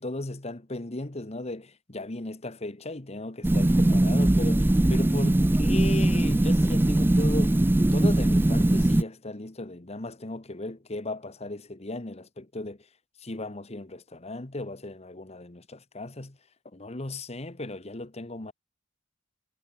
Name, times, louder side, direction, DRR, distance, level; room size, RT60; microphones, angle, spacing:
voice 1, 0.0-7.6 7.9-12.8 13.2-16.4 16.7-18.5, left 2 dB, 35° left, 1.3 m, -36 dB
sound 1, 3.4-9.0, right 1 dB, 10° right, 0.3 m, -21 dB
head